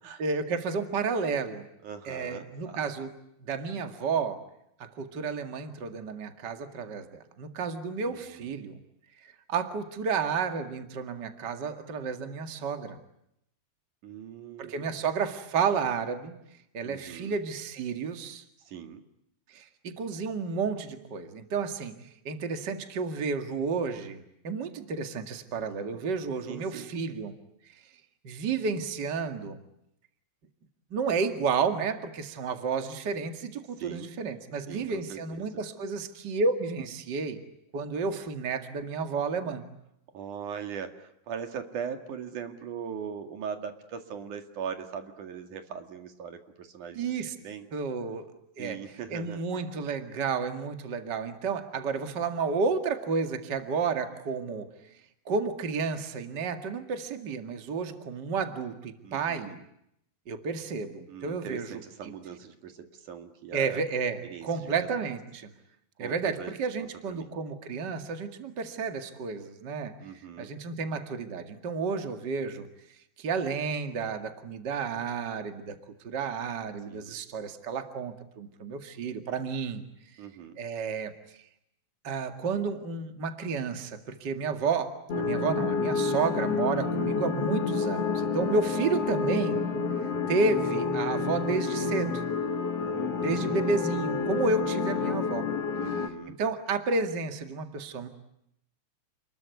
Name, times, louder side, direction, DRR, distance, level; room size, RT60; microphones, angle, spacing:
voice 1, 0.2-1.7 2.1-3.1 3.4-4.4 4.8-8.8 9.2-13.0 14.6-16.4 16.7-18.4 19.5-22.0 22.2-27.3 28.2-29.6 30.9-37.4 37.7-39.6 47.0-47.3 47.7-48.3 48.6-48.8 49.1-54.7 55.3-59.6 60.3-61.8 63.5-65.5 66.0-72.7 73.2-75.8 76.0-79.8 80.6-81.1 82.0-89.6 90.3-92.2 93.2-95.5 96.3-98.1, right 4 dB, 40° right, 7 dB, 2.4 m, -31 dB
voice 2, 1.8-2.8 8.0-8.5 14.0-15.0 16.8-17.3 18.6-19.0 26.5-26.9 33.8-34.1 34.7-35.6 40.1-47.2 47.4-47.7 48.6-49.6 59.0-59.6 61.1-63.8 64.2-64.9 66.0-67.4 70.0-70.5 76.9-77.2 80.2-80.6 92.8-93.6 95.8-96.4, right 7 dB, 80° right, 6 dB, 3.6 m, -40 dB
sound 1, 85.1-96.1, left 4 dB, 55° left, 2.9 m, -29 dB
29.5 x 21.5 x 9.4 m, 0.78 s
omnidirectional pair, 3.5 m